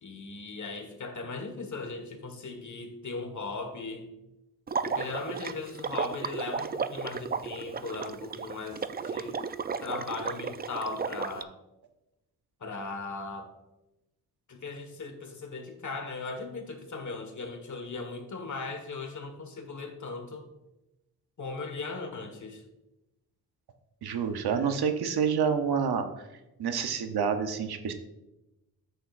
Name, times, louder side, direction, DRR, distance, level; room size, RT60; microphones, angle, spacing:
voice 1, 0.0-4.1 4.8-9.4 9.8-11.5 12.6-13.5 14.5-20.5 21.4-22.6, left 3 dB, 50° left, 5 dB, 1.6 m, -38 dB
Water / Liquid, 4.7-11.4, right 5 dB, 25° right, 0.4 m, -34 dB
voice 2, 24.0-26.1 26.6-27.9, right 6 dB, 80° right, 7 dB, 0.9 m, -28 dB
9.9 x 8.0 x 2.5 m, 0.96 s
cardioid pair, 70°, 38 cm